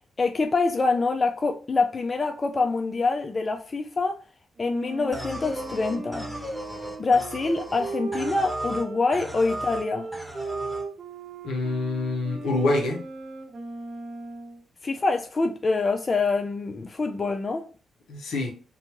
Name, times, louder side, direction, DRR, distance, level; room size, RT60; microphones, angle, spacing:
voice 1, 0.2-4.2 4.6-6.3 7.0-10.1 14.8-17.7, left 3 dB, 40° left, 0.3 m, -25 dB
Wind instrument woodwind instrument, 4.6-14.6, right 3 dB, 50° right, 0.8 m, -38 dB
sound 1, 5.1-8.9 9.1-9.8 10.1-10.8, right 1 dB, 10° left, 1.2 m, -35 dB
voice 2, 11.4-13.1 18.1-18.5, left 2 dB, 80° left, 0.8 m, -26 dB
2.7 x 2.2 x 2.9 m
supercardioid pair, 55°, 0 cm